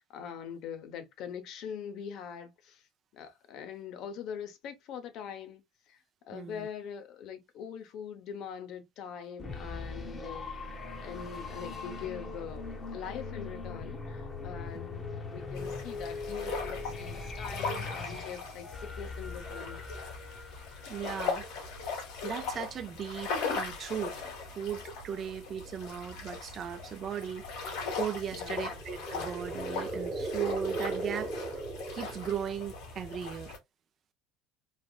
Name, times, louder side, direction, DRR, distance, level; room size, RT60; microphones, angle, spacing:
voice 1, 0.0-2.8 3.1-5.6 5.9-19.8 28.3-28.8, left 7 dB, 60° left, 0.7 m, -43 dB
voice 2, 6.3-6.7 20.9-21.5 22.2-24.2 24.6-31.3 31.9-33.5, right 8 dB, 40° right, 0.4 m, -37 dB
sound 1, 9.4-22.1, left 3 dB, 25° left, 0.8 m, -41 dB
sound 2, 15.5-33.6, left 4 dB, 80° left, 1.7 m, -39 dB
sound 3, 28.6-32.7, right 2 dB, 20° right, 0.9 m, -38 dB
3.2 x 2.5 x 2.3 m
supercardioid pair, 110°, 0 cm